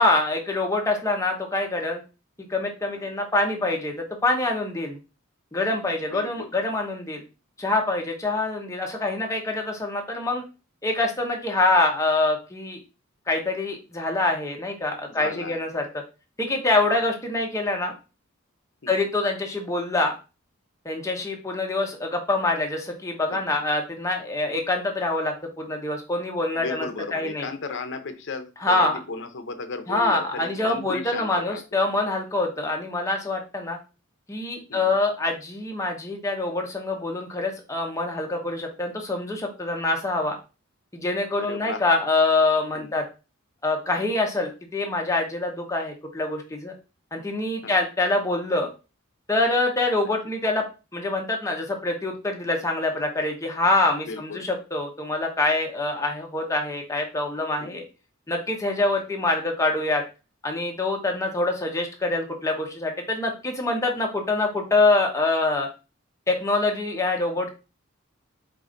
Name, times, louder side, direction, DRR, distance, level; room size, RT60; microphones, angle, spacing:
voice 1, 0.0-2.0 2.5-5.0 5.5-7.2 7.6-10.4 10.8-12.8 13.3-15.9 16.4-17.9 18.9-20.1 20.8-26.9 27.1-27.5 28.6-29.0 29.9-33.8 34.3-40.4 40.9-43.0 43.6-46.7 47.1-48.7 49.3-50.6 50.9-57.8 58.3-60.0 60.4-65.7 66.3-67.5, left 2 dB, 15° left, 2 dB, 0.8 m, -25 dB
voice 2, 6.1-6.6 15.1-15.6 16.9-17.1 18.8-19.1 23.3-23.4 26.5-31.6 34.7-34.9 41.4-41.8 42.7-43.0 47.6-47.8 50.0-50.1 54.1-54.4 57.6-57.9, left 4 dB, 60° left, 8 dB, 0.7 m, -35 dB
4.8 x 2.5 x 3.8 m, 0.31 s
head